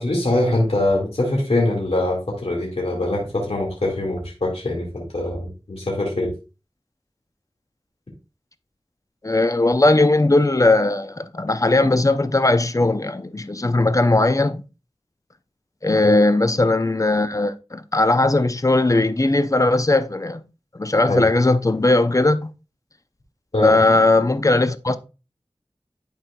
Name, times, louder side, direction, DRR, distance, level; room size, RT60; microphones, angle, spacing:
voice 1, 0.0-6.3 16.0-16.2 21.1-21.2 23.5-23.8, left 1 dB, 75° left, 2.0 m, -23 dB
voice 2, 9.2-14.6 15.8-20.4 20.7-22.5 23.6-25.0, left 2 dB, 35° left, 0.6 m, -18 dB
11.0 x 4.4 x 2.3 m
wide cardioid pair, 40°, 10 cm